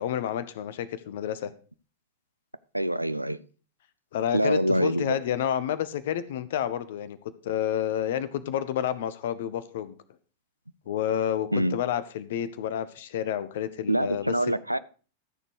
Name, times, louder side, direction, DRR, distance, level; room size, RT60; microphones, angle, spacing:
voice 1, 0.0-1.5 4.1-7.2 7.4-9.9 10.9-14.3, left 10 dB, 55° left, 1.0 m, -29 dB
voice 2, 2.7-3.4 4.3-5.2 11.5-11.8 13.9-14.8, right 1 dB, 85° right, 0.4 m, -25 dB
13.5 x 6.8 x 4.8 m
figure-of-eight pair, 90°, 0 cm